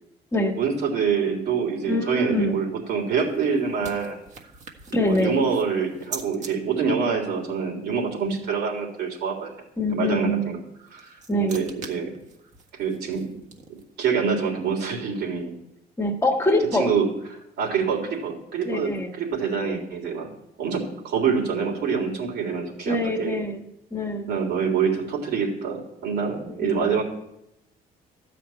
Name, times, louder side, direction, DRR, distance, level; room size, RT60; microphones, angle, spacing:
voice 1, 0.6-4.2 4.9-9.5 9.9-10.6 10.9-12.2 12.7-13.3 13.7-15.5 16.7-20.3 20.6-23.4 24.3-27.0, right 6 dB, 75° right, 0 dB, 3.6 m, -26 dB
voice 2, 1.9-2.6 4.9-5.4 9.8-10.5 11.3-11.6 16.0-16.9 18.6-19.1 22.9-23.6 23.9-24.3 26.6-26.9, left 1 dB, 15° left, 2 dB, 1.5 m, -24 dB
sound 1, 2.9-6.5 10.7-14.0, right 5 dB, 45° right, 1.6 m, -43 dB
12.5 x 5.1 x 8.9 m, 0.82 s
cardioid pair, 110°, 17 cm